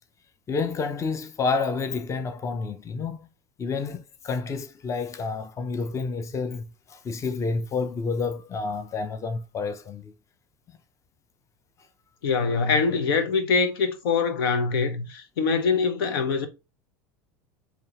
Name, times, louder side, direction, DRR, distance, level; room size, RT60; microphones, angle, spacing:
voice 1, 0.5-3.3 3.6-10.1, left 4 dB, 25° left, 0.6 m, -29 dB
voice 2, 12.2-16.5, left 5 dB, 85° left, 0.8 m, -24 dB
4.6 x 2.9 x 2.9 m
supercardioid pair, 100°, 12 cm